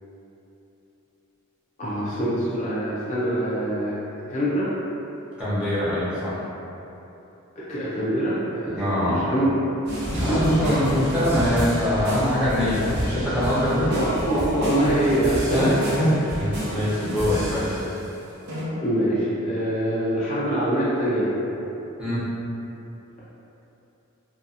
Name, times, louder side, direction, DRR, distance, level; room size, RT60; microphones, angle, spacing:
voice 1, 1.8-3.9 4.3-4.7 7.7-9.5 10.3-10.5 13.9-15.4 17.3-17.7 18.8-21.3, right 1 dB, 35° left, -10 dB, 0.4 m, -24 dB
voice 2, 5.4-6.4 8.8-9.2 10.1-13.9 15.5-17.6 22.0-22.2, equal, 5° right, -13 dB, 0.7 m, -23 dB
sound 1, 9.9-18.1 18.5-18.6, equal, 50° right, 0.6 m, -30 dB
2.6 x 2.3 x 2.4 m, 3.0 s
head